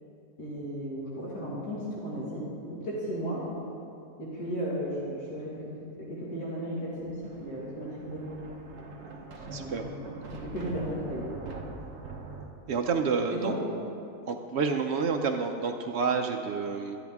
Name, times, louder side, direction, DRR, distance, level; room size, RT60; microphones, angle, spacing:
voice 1, 0.4-3.4 4.2-5.6 6.0-8.2 9.4-11.3 13.3-13.6, equal, 80° left, -7 dB, 2.4 m, -35 dB
Thunder, 6.9-12.4, right 3 dB, 50° right, 1.1 m, -43 dB
voice 2, 9.5-9.8 12.7-13.5 14.3-17.0, right 5 dB, 75° right, 4 dB, 0.6 m, -29 dB
12.0 x 10.5 x 3.5 m, 2.7 s
omnidirectional pair, 1.7 m